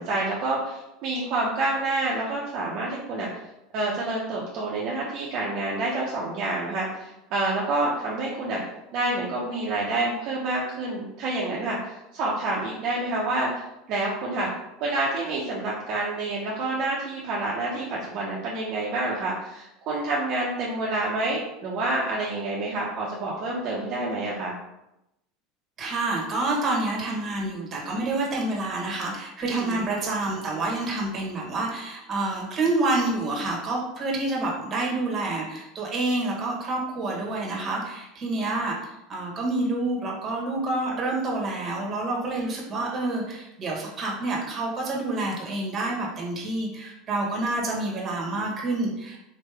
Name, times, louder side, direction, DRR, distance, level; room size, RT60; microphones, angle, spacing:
voice 1, 0.0-3.3 3.7-8.6 8.9-13.5 13.9-14.5 14.8-24.6 29.5-29.8, right 2 dB, 50° right, -4 dB, 0.8 m, -28 dB
voice 2, 25.8-49.2, right 2 dB, 30° right, -2 dB, 1.4 m, -28 dB
4.1 x 3.1 x 3.4 m, 0.89 s
supercardioid pair, 130°, 0 cm